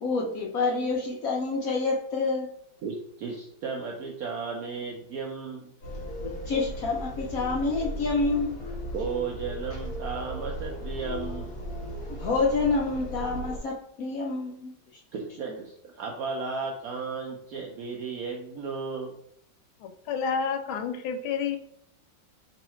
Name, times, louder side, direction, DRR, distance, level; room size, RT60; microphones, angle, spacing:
voice 1, 0.0-2.5 6.2-8.6 12.2-14.7, left 3 dB, 70° left, -1 dB, 0.8 m, -28 dB
voice 2, 2.8-5.7 8.9-11.5 15.1-19.1, right 5 dB, 75° right, 0 dB, 0.8 m, -34 dB
sound 1, 5.8-13.6, equal, 40° left, 1.2 m, -36 dB
voice 3, 19.8-21.6, left 6 dB, 90° left, 7 dB, 1.4 m, -29 dB
3.1 x 2.8 x 4.3 m, 0.69 s
omnidirectional pair, 2.1 m